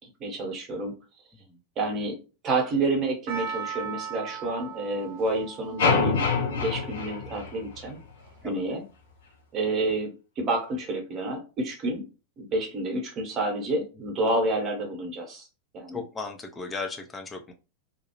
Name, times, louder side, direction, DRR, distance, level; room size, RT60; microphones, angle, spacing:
voice 1, 0.0-1.0 1.8-6.1 6.6-8.0 8.4-8.8 9.5-12.1 12.4-15.5 15.7-16.0, right 2 dB, 30° right, 2 dB, 1.0 m, -29 dB
Percussion, 3.3-7.6 8.3-8.4, right 7 dB, 50° right, 0.6 m, -38 dB
sound 1, 5.8-8.1, left 5 dB, 60° left, 0.6 m, -26 dB
voice 2, 15.9-17.5, left 4 dB, 15° left, 4 dB, 0.6 m, -36 dB
2.5 x 2.3 x 3.0 m, 0.32 s
figure-of-eight pair, 90°, 0 cm